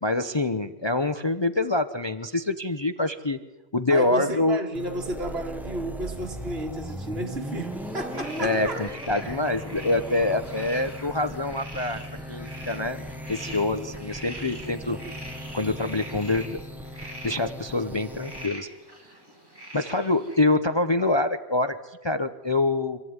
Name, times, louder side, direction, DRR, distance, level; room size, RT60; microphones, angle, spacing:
voice 1, 0.0-3.4 3.7-4.6 8.4-12.0 12.3-13.0 13.3-15.0 15.5-16.6 17.0-18.7 19.7-23.0, left 2 dB, 25° left, 0.8 m, -25 dB
voice 2, 3.9-8.8, right 1 dB, 65° right, 2.5 m, -32 dB
sound 1, 4.7-18.5, equal, ahead, 1.1 m, -38 dB
sound 2, 7.7-20.4, right 1 dB, 20° right, 4.5 m, -44 dB
26.0 x 15.0 x 9.6 m
omnidirectional pair, 1.1 m